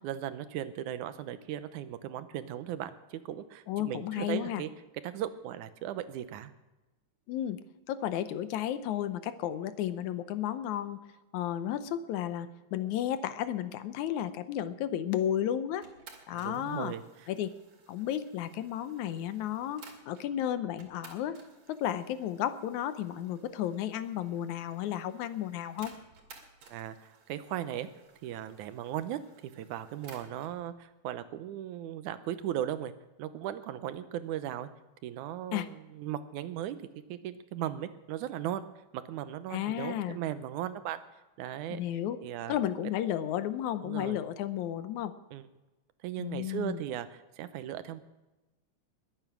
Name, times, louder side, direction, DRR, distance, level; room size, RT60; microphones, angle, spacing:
voice 1, 0.0-4.7 5.0-6.5 16.3-17.3 26.7-27.9 28.2-32.9 33.2-34.7 35.0-36.8 37.1-38.7 38.9-41.0 41.4-41.8 42.2-42.5 43.8-44.2 45.3-45.4 46.0-48.0, right 11 dB, 90° right, 12 dB, 2.3 m, -37 dB
voice 2, 3.7-4.6 7.3-7.6 7.9-11.0 11.3-15.9 16.3-16.9 17.3-17.5 17.9-21.4 21.7-25.9 35.5-35.7 39.5-40.2 41.7-42.2 42.5-45.1 46.2-46.8, left 11 dB, 80° left, 12 dB, 2.2 m, -33 dB
sound 1, 15.8-20.3 20.8-30.6, right 4 dB, 55° right, 3.3 m, -57 dB
21.5 x 9.1 x 6.0 m, 1.1 s
omnidirectional pair, 3.4 m